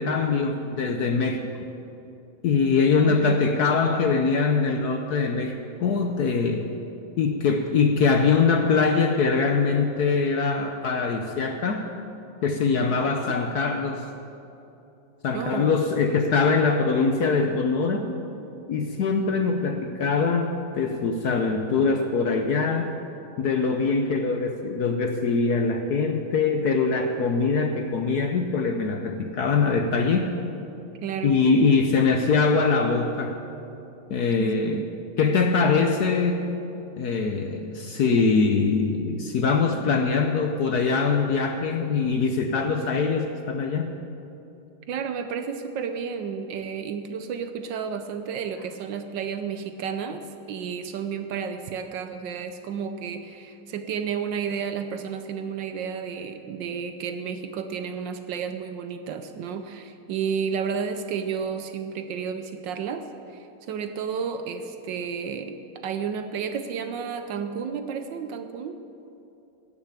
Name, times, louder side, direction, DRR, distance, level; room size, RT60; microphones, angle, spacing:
voice 1, 0.0-1.5 2.4-6.7 7.2-11.9 12.4-14.0 15.2-18.1 18.7-22.9 23.4-30.4 31.2-33.4 34.1-34.9 35.2-36.5 37.0-44.0, left 4 dB, 65° left, 5 dB, 1.0 m, -23 dB
voice 2, 2.9-3.4 15.3-15.7 31.0-31.4 34.4-34.9 44.9-65.6 65.8-68.8, right 6 dB, 70° right, 8 dB, 1.2 m, -32 dB
17.0 x 6.9 x 7.2 m, 2.9 s
omnidirectional pair, 2.3 m